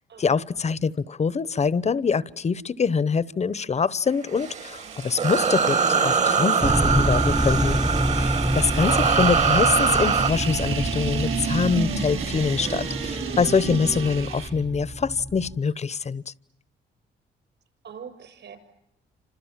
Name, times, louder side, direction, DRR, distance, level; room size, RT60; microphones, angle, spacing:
voice 1, 0.2-7.8 8.1-16.3, left 5 dB, 35° left, 1.0 m, -24 dB
sound 1, 4.3-10.3, right 5 dB, 35° right, 1.6 m, -23 dB
sound 2, 4.4-14.5, right 7 dB, 85° right, 5.0 m, -32 dB
sound 3, 6.6-15.6, right 1 dB, 5° right, 1.0 m, -27 dB
voice 2, 8.7-9.1 17.8-18.6, right 7 dB, 60° right, 7.0 m, -42 dB
29.0 x 27.0 x 7.5 m
cardioid pair, 90°, 20 cm